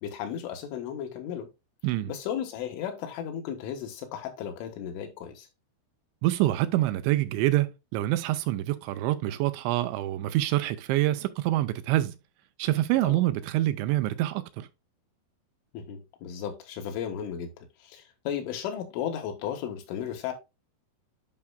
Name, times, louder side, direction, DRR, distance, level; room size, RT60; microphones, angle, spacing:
voice 1, 0.0-1.5 2.1-5.5 13.0-13.2 15.7-17.5 17.8-20.3, left 9 dB, 85° left, 3.9 m, -35 dB
voice 2, 6.2-12.1 12.6-14.7, right 15 dB, 85° right, 2.8 m, -26 dB
10.5 x 5.7 x 2.3 m
omnidirectional pair, 5.4 m